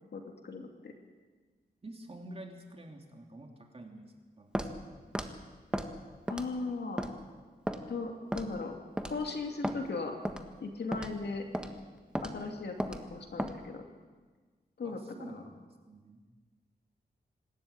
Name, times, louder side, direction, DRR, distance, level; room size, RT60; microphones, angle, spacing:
voice 1, 0.1-0.9 6.3-7.1 7.9-8.8 9.0-10.2 10.6-11.5 12.2-13.8 14.8-15.4, left 3 dB, 80° left, 3 dB, 2.8 m, -37 dB
voice 2, 1.8-5.0 14.8-16.2, right 1 dB, 35° right, 2 dB, 3.1 m, -49 dB
Walk footsteps, 4.5-4.7 5.1-5.3 5.7-5.9 6.3-6.6 7.0-7.1 7.7-7.8 8.3-8.5 9.0-9.2 9.6-9.8 10.2-10.4 10.9-11.1 11.5-11.7 12.1-12.3 12.8-13.0 13.4-13.6, equal, 5° right, 1.5 m, -34 dB
26.0 x 13.0 x 8.8 m, 1.4 s
wide cardioid pair, 95°, 17 cm